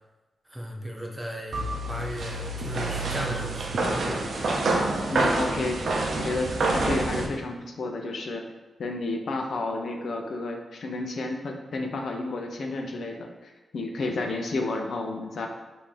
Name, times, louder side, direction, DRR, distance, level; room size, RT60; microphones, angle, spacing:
voice 1, 0.5-4.2, equal, 10° right, 1 dB, 0.6 m, -36 dB
sound 1, 1.5-7.3, right 2 dB, 65° right, 0.6 m, -27 dB
voice 2, 5.1-5.8 6.2-8.4 8.8-15.5, left 2 dB, 65° left, 3 dB, 0.5 m, -31 dB
5.3 x 2.7 x 3.2 m, 1.2 s
wide cardioid pair, 110°, 0 cm